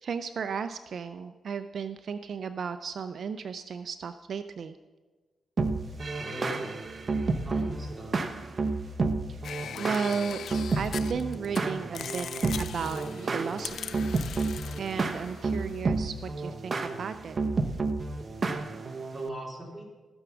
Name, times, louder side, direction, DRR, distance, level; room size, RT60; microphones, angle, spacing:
voice 1, 0.0-4.7 9.3-9.4 9.8-10.4 10.7-12.3 12.6-14.1 14.8-17.4, right 6 dB, 60° right, 10 dB, 0.5 m, -34 dB
sound 1, 5.6-19.3, right 3 dB, 40° right, 1.0 m, -31 dB
voice 2, 6.2-6.7 7.2-8.2 19.1-19.8, right 1 dB, 10° right, -1 dB, 3.2 m, -40 dB
sound 2, 9.4-11.6 11.9-15.8, left 8 dB, 70° left, 0.5 m, -40 dB
15.0 x 7.0 x 6.1 m, 1.3 s
cardioid pair, 95°, 0 cm